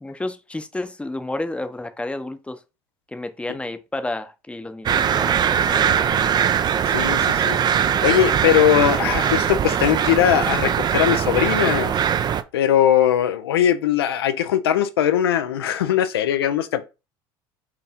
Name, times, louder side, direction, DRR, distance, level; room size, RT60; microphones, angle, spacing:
voice 1, 0.0-2.6 3.1-6.2, left 2 dB, 10° left, 0.6 m, -31 dB
sound 1, 4.9-12.4, right 8 dB, 35° right, 0.4 m, -21 dB
voice 2, 6.9-7.6 8.0-11.9 12.5-16.8, left 10 dB, 90° left, 0.5 m, -20 dB
4.7 x 2.6 x 3.5 m
hypercardioid pair, 75°, 12 cm